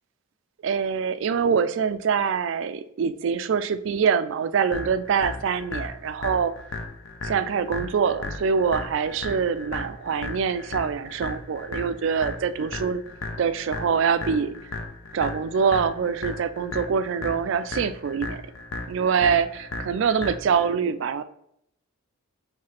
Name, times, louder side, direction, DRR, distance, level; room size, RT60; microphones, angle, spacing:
voice 1, 0.6-6.5 7.2-13.0 13.4-14.5 15.1-18.4 18.9-21.2, right 6 dB, 60° right, 13 dB, 0.3 m, -24 dB
sound 1, 4.7-20.7, left 2 dB, 70° left, 0.6 m, -36 dB
4.8 x 3.2 x 3.1 m, 0.74 s
head